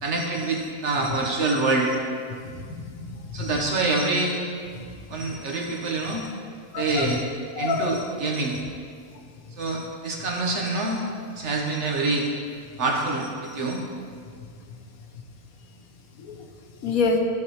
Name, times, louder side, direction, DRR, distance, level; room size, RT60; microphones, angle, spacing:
voice 1, 0.0-2.0 3.3-4.4 5.1-6.3 6.7-7.2 7.6-8.6 9.6-11.0 11.4-12.3 12.8-13.8, right 3 dB, 55° right, 0 dB, 1.4 m, -26 dB
voice 2, 2.5-3.5 6.7-7.1 7.6-8.0 16.2-16.3 16.8-17.2, left 4 dB, 70° left, 3 dB, 1.3 m, -27 dB
14.5 x 4.9 x 3.2 m, 2.2 s
omnidirectional pair, 1.6 m